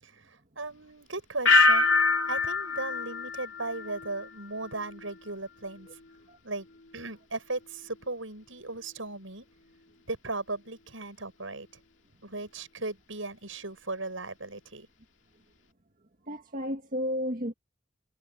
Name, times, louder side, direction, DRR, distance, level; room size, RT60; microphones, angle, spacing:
voice 1, 0.0-1.9 2.3-5.9 6.4-6.7 6.9-9.5 10.1-11.7 12.2-14.9, right 2 dB, 80° right, 7.5 m, -37 dB
sound 1, 1.5-4.3 4.6-5.1, left 3 dB, 65° left, 2.5 m, -25 dB
voice 2, 16.2-17.5, equal, 45° right, 1.9 m, -32 dB
head